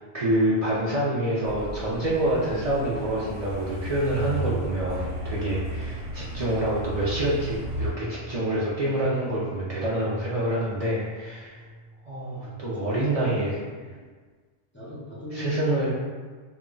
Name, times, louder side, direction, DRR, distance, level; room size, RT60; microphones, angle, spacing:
voice 1, 0.0-11.6 12.1-13.5 15.3-15.9, right 1 dB, 60° right, -7 dB, 0.4 m, -27 dB
Truck, 1.4-7.9, equal, 90° right, 0.9 m, -34 dB
sound 1, 11.5-12.2, equal, 10° right, 0.8 m, -46 dB
voice 2, 12.3-13.3 13.8-13.9 14.7-15.9, equal, 20° left, -9 dB, 0.4 m, -38 dB
2.2 x 2.1 x 3.6 m, 1.5 s
omnidirectional pair, 1.1 m